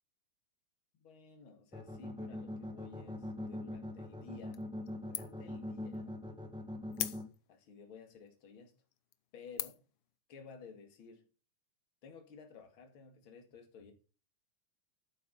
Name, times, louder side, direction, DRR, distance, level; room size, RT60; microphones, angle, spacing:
voice 1, 1.0-4.7 4.9-6.1 7.5-8.7 9.3-9.8 10.3-11.2 12.0-13.9, left 5 dB, 45° left, 2.7 m, -54 dB
sound 1, 1.7-7.2, left 1 dB, 5° right, 0.7 m, -42 dB
sound 2, 4.5-4.9 5.1-5.5 5.9-6.0 6.9-7.6 8.3-8.4 8.9-9.1 9.6-10.0, left 13 dB, 75° left, 1.4 m, -40 dB
12.0 x 9.1 x 4.1 m
omnidirectional pair, 3.6 m